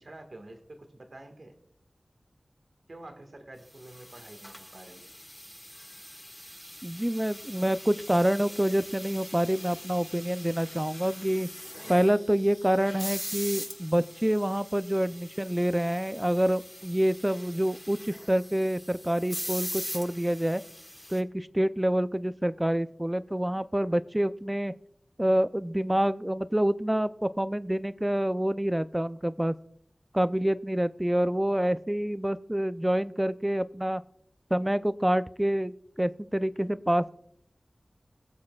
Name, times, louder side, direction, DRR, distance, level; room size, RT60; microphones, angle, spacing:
voice 1, 0.0-1.5 2.9-5.1, right 1 dB, 65° right, 5 dB, 1.7 m, -48 dB
sound 1, 3.8-21.2, equal, 5° left, 1.7 m, -42 dB
voice 2, 6.8-11.5 11.9-20.6 21.1-24.7 25.2-29.5 30.1-34.0 34.5-37.1, right 1 dB, 15° right, 14 dB, 0.5 m, -27 dB
20.5 x 7.3 x 2.4 m, 0.67 s
wide cardioid pair, 45°, 0 cm